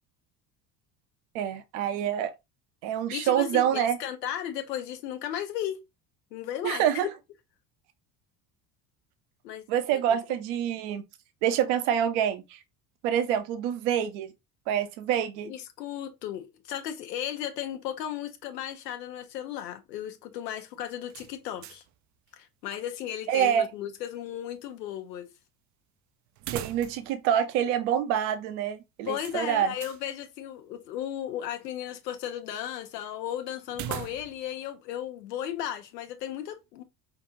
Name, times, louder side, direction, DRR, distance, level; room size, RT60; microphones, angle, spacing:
voice 1, 1.3-2.3 2.8-4.0 6.6-7.1 9.7-11.0 11.4-12.6 13.0-14.3 14.7-15.5 23.3-23.7 26.5-29.7, right 9 dB, 70° right, 0.8 m, -26 dB
voice 2, 3.1-5.8 6.3-7.1 9.4-9.6 9.9-10.2 15.4-21.8 22.3-25.3 29.0-36.8, left 10 dB, 85° left, 0.9 m, -35 dB
sound 1, 21.1-22.0 22.3-22.4 26.3-27.2 27.5-27.6 29.2-30.0 33.7-34.5, right 12 dB, 40° right, 0.4 m, -39 dB
5.7 x 2.4 x 2.7 m
hypercardioid pair, 70°, 48 cm